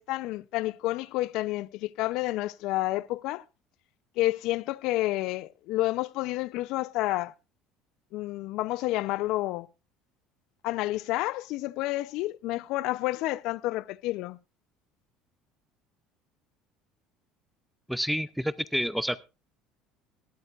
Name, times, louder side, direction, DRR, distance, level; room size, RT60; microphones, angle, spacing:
voice 1, 0.0-3.4 4.2-7.3 8.1-9.7 10.6-14.4, left 18 dB, 70° left, 0.5 m, -30 dB
voice 2, 17.9-19.2, equal, ahead, 0.5 m, -29 dB
18.0 x 12.5 x 2.4 m
supercardioid pair, 95°, 0 cm